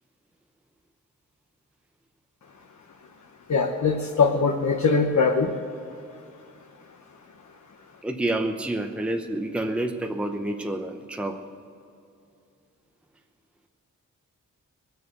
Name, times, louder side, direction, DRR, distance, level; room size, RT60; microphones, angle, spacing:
voice 1, 3.5-5.5, left 4 dB, 60° left, 2 dB, 1.1 m, -21 dB
voice 2, 8.0-11.4, right 1 dB, 5° right, 4 dB, 0.8 m, -28 dB
20.5 x 7.0 x 7.9 m, 2.5 s
wide cardioid pair, 110°, 31 cm